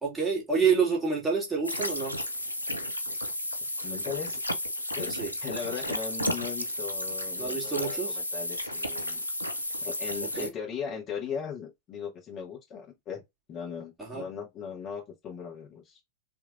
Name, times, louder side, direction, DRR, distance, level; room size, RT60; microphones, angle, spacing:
voice 1, 0.0-2.2 5.1-5.3 7.4-8.2 10.4-10.5 14.0-14.2, right 5 dB, 5° right, 2.2 m, -28 dB
sound 1, 1.6-10.5, left 1 dB, 90° right, 0.6 m, -33 dB
voice 2, 3.8-4.4 4.9-9.2 9.8-13.2 13.5-16.0, left 7 dB, 30° left, 1.7 m, -38 dB
3.9 x 3.3 x 2.5 m
figure-of-eight pair, 90°, 0 cm